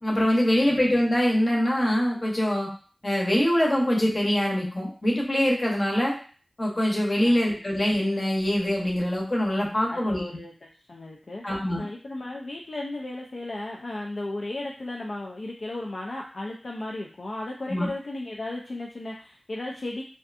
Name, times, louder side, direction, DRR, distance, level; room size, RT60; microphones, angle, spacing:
voice 1, 0.0-2.7 3.0-6.2 6.6-10.2 11.4-11.8 17.7-17.9, equal, 45° left, -1 dB, 0.8 m, -24 dB
voice 2, 0.5-0.9 7.2-7.6 9.9-20.0, left 2 dB, 65° left, -2 dB, 0.3 m, -35 dB
2.5 x 2.3 x 2.4 m, 0.41 s
wide cardioid pair, 60°, 0 cm